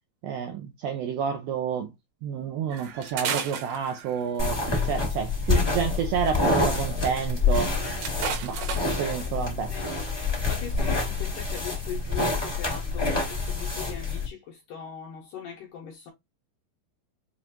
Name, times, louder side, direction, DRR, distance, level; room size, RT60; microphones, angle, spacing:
voice 1, 0.2-1.9 2.2-7.7 8.4-8.7 9.0-9.7, right 7 dB, 85° right, 2.0 m, -29 dB
sound 1, 2.7-4.5 5.8-6.3 6.7-6.8 7.0-7.1 7.6-9.1 10.1-10.3 10.8-11.2 11.6-11.9, right 6 dB, 70° right, 3.0 m, -34 dB
sound 2, 4.4-14.3, left 3 dB, 20° left, 0.6 m, -27 dB
voice 2, 9.7-16.1, left 8 dB, 70° left, 2.0 m, -40 dB
7.1 x 2.6 x 2.8 m
omnidirectional pair, 5.0 m